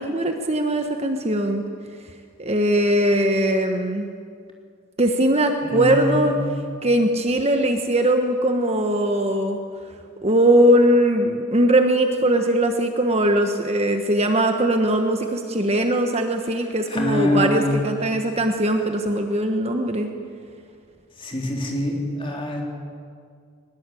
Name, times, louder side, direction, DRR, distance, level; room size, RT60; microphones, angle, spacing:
voice 1, 0.0-1.6 2.4-4.1 5.0-6.3 6.8-9.6 10.2-20.1, right 1 dB, 30° right, 5 dB, 1.3 m, -20 dB
voice 2, 5.6-6.4 16.9-17.8 21.2-22.6, left 1 dB, 25° left, 0 dB, 3.6 m, -24 dB
21.5 x 21.0 x 8.5 m, 2.2 s
head